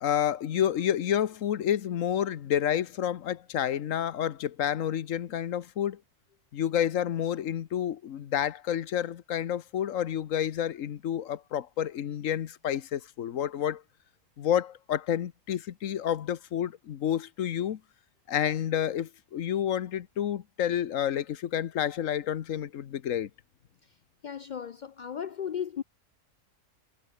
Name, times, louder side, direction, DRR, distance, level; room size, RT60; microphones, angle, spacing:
voice 1, 0.0-6.0 6.5-13.8 14.4-17.8 18.3-23.3, left 10 dB, 85° left, 1.3 m, -29 dB
voice 2, 24.2-25.8, left 8 dB, 70° left, 0.4 m, -35 dB
omnidirectional pair, 1.3 m